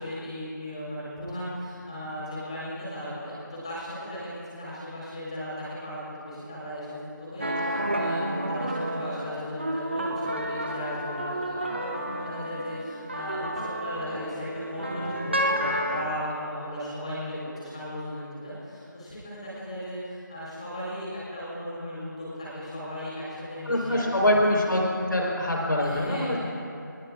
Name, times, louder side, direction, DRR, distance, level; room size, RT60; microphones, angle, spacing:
voice 1, 0.0-24.0 24.3-24.4 25.8-26.4, equal, 20° left, -8 dB, 4.1 m, -36 dB
sound 1, 7.4-16.0, right 1 dB, 35° right, 0.8 m, -30 dB
voice 2, 23.7-26.4, left 1 dB, 75° left, -2 dB, 4.2 m, -24 dB
20.5 x 20.0 x 2.5 m, 2.6 s
figure-of-eight pair, 180°, 11 cm